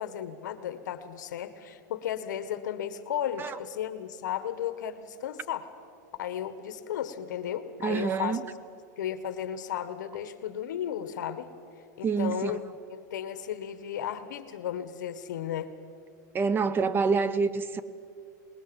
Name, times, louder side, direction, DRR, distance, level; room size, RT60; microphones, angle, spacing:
voice 1, 0.0-5.7 6.2-8.4 9.0-11.5 12.0-12.6 12.9-15.7, left 10 dB, 80° left, 1.7 m, -34 dB
voice 2, 7.8-8.4 12.0-12.6 16.3-17.8, right 5 dB, 20° right, 0.9 m, -27 dB
26.5 x 20.5 x 7.2 m
supercardioid pair, 130°, 10 cm